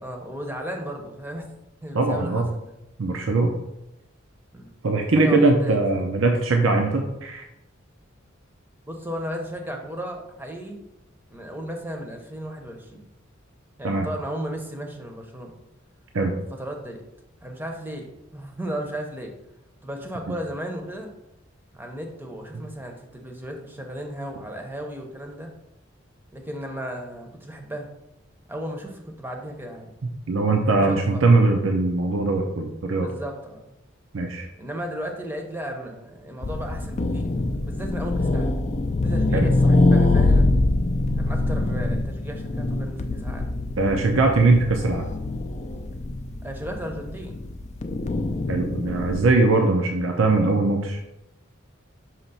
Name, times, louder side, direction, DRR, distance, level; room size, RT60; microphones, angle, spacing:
voice 1, 0.0-1.5 1.8-2.7 4.5-4.7 5.2-5.8 8.9-10.8 11.3-13.1 13.8-15.5 16.6-17.0 17.4-19.3 19.8-21.1 21.7-25.5 26.3-27.9 28.5-29.9 30.6-31.2 33.0-33.6 34.6-37.3 37.6-38.6 39.0-40.5 41.2-43.5 46.4-47.4, equal, 10° right, 2 dB, 0.7 m, -35 dB
voice 2, 1.9-2.5 3.0-3.6 4.8-7.4 13.8-14.1 16.1-16.3 30.3-33.1 34.1-34.5 39.3-39.5 43.8-45.1 48.5-51.0, right 3 dB, 75° right, 2 dB, 0.6 m, -21 dB
sound 1, 36.4-49.2, left 2 dB, 35° left, 0.4 m, -24 dB
5.7 x 3.0 x 5.5 m, 0.89 s
head